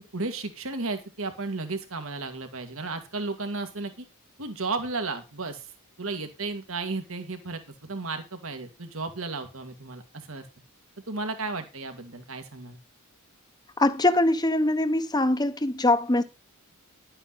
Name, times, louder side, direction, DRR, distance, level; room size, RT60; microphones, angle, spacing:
voice 1, 0.1-4.1 4.4-5.7 6.0-10.5 11.1-12.8, right 3 dB, 65° right, 2.0 m, -34 dB
voice 2, 13.8-16.2, left 2 dB, 20° left, 1.0 m, -23 dB
11.5 x 8.8 x 4.0 m
head